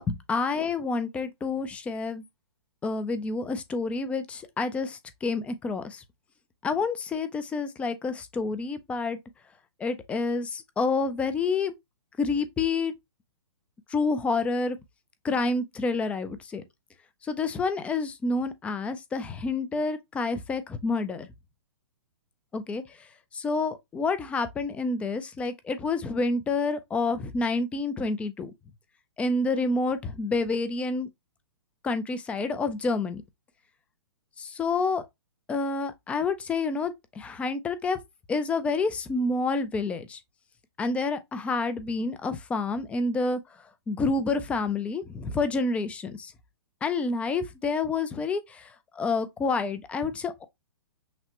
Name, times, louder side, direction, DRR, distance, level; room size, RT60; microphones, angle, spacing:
voice 1, 0.0-2.2 2.8-6.0 6.6-9.2 9.8-11.7 12.2-12.9 13.9-14.8 15.2-16.6 17.2-21.3 22.5-28.5 29.2-31.1 31.8-33.2 34.4-35.1 35.5-38.0 38.3-40.2 40.8-46.3 46.8-50.5, left 3 dB, 10° left, 0.3 m, -28 dB
5.8 x 2.1 x 2.9 m
hypercardioid pair, 145°, 15 cm